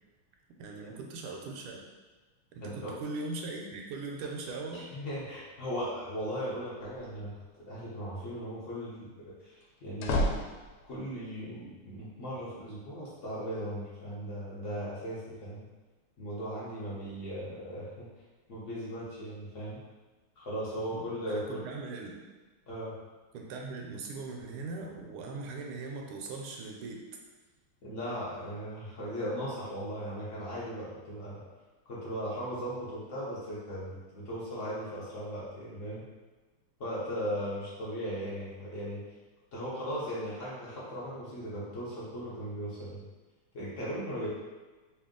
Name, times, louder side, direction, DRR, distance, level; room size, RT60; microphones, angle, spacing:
voice 1, 0.6-1.8 2.5-4.9 20.9-22.2 23.3-27.0 44.2-44.3, right 3 dB, 85° right, 1 dB, 1.5 m, -40 dB
voice 2, 2.6-3.0 4.7-10.2 10.8-15.7 16.2-18.1 18.5-19.8 20.4-21.6 22.7-22.9 27.8-31.4 31.9-36.1 36.8-39.0 39.5-43.0 43.5-44.3, equal, 55° left, -8 dB, 0.8 m, -37 dB
sound 1, 6.8-7.4 9.6-11.1, left 1 dB, 85° left, 1.5 m, -32 dB
3.4 x 2.6 x 3.6 m, 1.3 s
omnidirectional pair, 2.4 m